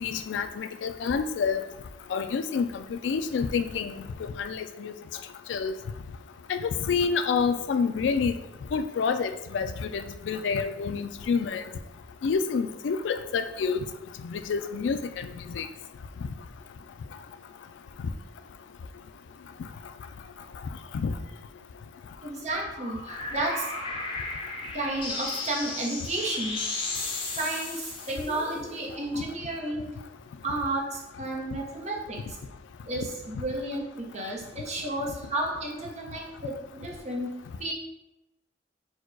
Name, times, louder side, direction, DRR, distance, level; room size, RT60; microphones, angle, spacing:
voice 1, 0.0-1.6 2.1-3.9 4.2-4.9 5.5-5.7 6.5-8.4 8.7-11.6 12.2-13.9 14.2-15.7 20.9-21.1, left 5 dB, 75° left, 9 dB, 0.3 m, -28 dB
voice 2, 22.2-23.7 24.7-29.9 30.4-32.2 32.9-37.3 37.6-37.7, right 2 dB, 40° right, -2 dB, 0.8 m, -32 dB
sound 1, 22.7-29.2, left 3 dB, 30° left, 0.6 m, -35 dB
4.4 x 2.3 x 4.5 m, 0.94 s
head